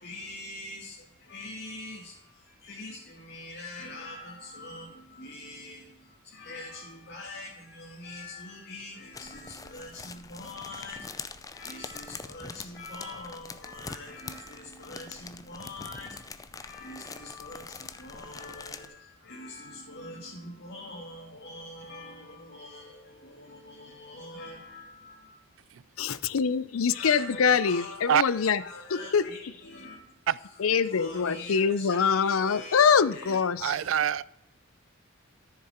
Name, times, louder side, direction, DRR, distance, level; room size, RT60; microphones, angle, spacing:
voice 1, 0.0-25.4 26.9-30.2 30.9-32.8 33.1-33.4 33.8-34.0, left 2 dB, 50° left, 1.6 m, -44 dB
sound 1, 9.1-18.9, left 4 dB, 15° left, 0.5 m, -44 dB
voice 2, 26.0-28.6 28.9-29.5 30.6-33.7, left 6 dB, 85° left, 0.5 m, -24 dB
voice 3, 33.6-34.2, right 9 dB, 65° right, 0.3 m, -25 dB
13.5 x 6.8 x 4.4 m
head